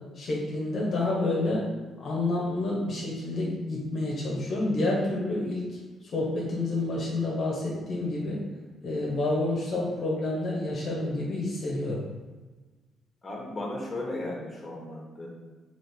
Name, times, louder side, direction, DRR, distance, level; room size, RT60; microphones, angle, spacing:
voice 1, 0.1-1.7 2.0-8.4 8.8-12.0, left 2 dB, 55° left, -4 dB, 0.8 m, -29 dB
voice 2, 13.2-15.3, left 1 dB, 25° left, -2 dB, 1.1 m, -35 dB
3.2 x 2.9 x 4.2 m, 1.2 s
cardioid pair, 90°, 0 cm